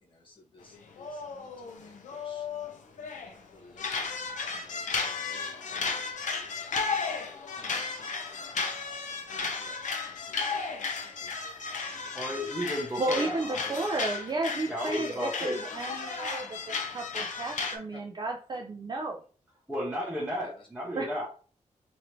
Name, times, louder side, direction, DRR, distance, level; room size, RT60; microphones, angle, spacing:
voice 1, 0.0-10.5 10.9-11.3 11.8-12.4 17.9-18.0 20.0-20.1 20.4-20.7, left 2 dB, 40° left, -3 dB, 1.0 m, -57 dB
sound 1, 0.7-3.3 3.8-17.8, left 4 dB, 70° left, 0.6 m, -34 dB
voice 2, 12.1-13.8 14.7-15.6 19.7-21.3, equal, 5° right, -4 dB, 0.7 m, -34 dB
voice 3, 13.0-19.2 20.9-21.1, right 2 dB, 35° right, 1 dB, 0.4 m, -33 dB
3.0 x 2.6 x 4.4 m, 0.41 s
wide cardioid pair, 170°, 13 cm